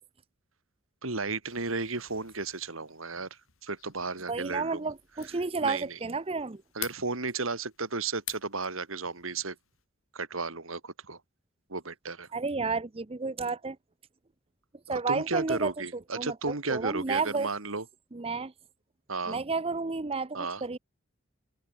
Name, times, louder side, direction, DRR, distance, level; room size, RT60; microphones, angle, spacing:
voice 1, 1.0-4.8 5.6-6.0 6.7-9.5 10.1-11.2 11.7-12.3 14.9-17.8 19.1-19.4 20.3-20.6, right 3 dB, 80° right, 2.8 m, -34 dB
sound 1, 1.4-9.8, left 15 dB, 80° left, 3.4 m, -48 dB
voice 2, 4.3-6.6 12.3-13.8 14.9-15.7 16.1-17.5 18.1-18.5 19.3-20.8, right 4 dB, 30° right, 0.7 m, -31 dB
head